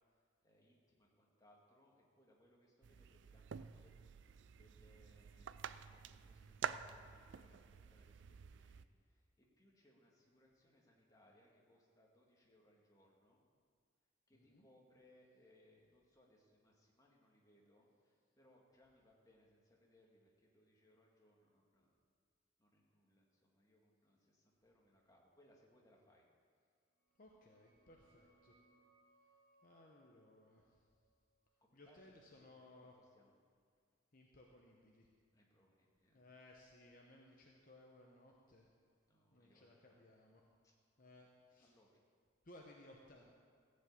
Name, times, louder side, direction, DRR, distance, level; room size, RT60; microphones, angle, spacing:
voice 1, 0.1-4.0 4.3-9.2 9.6-13.4 14.3-21.9 22.6-26.2 31.6-32.5 32.8-33.3 35.3-36.2 39.1-40.0 41.0-41.1 41.6-42.0, left 1 dB, 20° left, -2 dB, 1.7 m, -71 dB
sound 1, 2.8-8.8, right 7 dB, 65° right, 0.4 m, -49 dB
voice 2, 14.3-14.7 27.2-28.6 29.6-30.9 31.7-32.9 34.1-35.1 36.1-38.7 39.3-40.4 41.0-41.7 42.4-43.3, left 1 dB, 45° left, -1 dB, 0.9 m, -62 dB
sound 2, 26.9-32.4, right 2 dB, 35° right, 2.9 m, -75 dB
15.0 x 5.4 x 8.3 m, 2.1 s
head